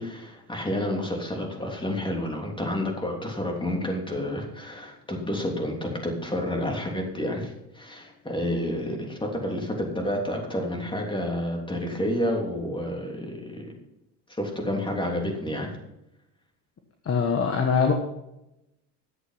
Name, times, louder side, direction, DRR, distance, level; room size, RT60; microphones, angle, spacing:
voice 1, 0.0-13.7 14.3-15.7, left 1 dB, 10° left, 1 dB, 3.3 m, -30 dB
voice 2, 17.0-17.9, left 6 dB, 30° left, 4 dB, 1.5 m, -22 dB
11.5 x 7.9 x 5.8 m, 0.89 s
hypercardioid pair, 85°, 49 cm